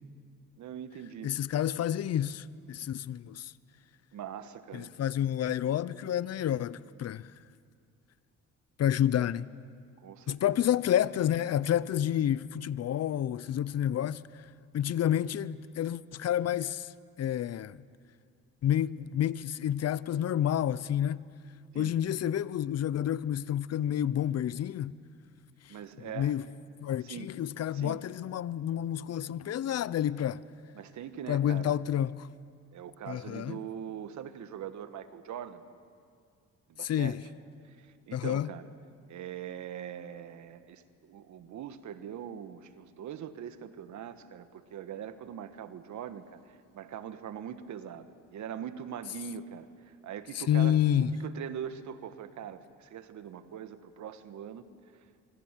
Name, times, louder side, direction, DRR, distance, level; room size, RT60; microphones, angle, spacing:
voice 1, 0.6-1.3 4.1-4.9 9.1-9.3 10.0-10.6 21.7-21.9 25.7-26.3 27.0-27.3 27.7-28.0 30.7-31.8 32.7-35.6 36.7-37.2 37.6-38.7 39.1-50.8 51.2-54.6 54.9-55.1, right 9 dB, 70° right, 1.4 m, -42 dB
voice 2, 1.2-3.5 4.7-7.3 8.8-9.5 10.3-14.4 14.7-17.8 18.6-21.2 21.7-24.9 25.7-26.4 26.8-30.4 31.3-32.3 33.1-33.6 36.8-37.2 38.1-38.5 50.3-51.2, left 10 dB, 55° left, 0.7 m, -29 dB
26.0 x 24.5 x 7.4 m
cardioid pair, 90°, 30 cm